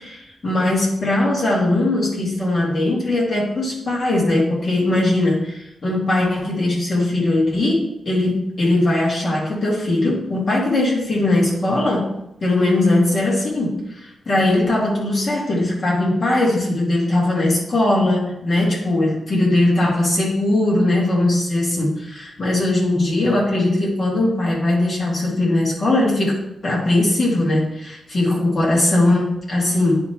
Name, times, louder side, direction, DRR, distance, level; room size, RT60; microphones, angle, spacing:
voice 1, 0.0-12.1 12.4-30.0, left 1 dB, 35° left, -4 dB, 2.4 m, -20 dB
9.7 x 3.6 x 4.6 m, 0.83 s
wide cardioid pair, 165°, 0 cm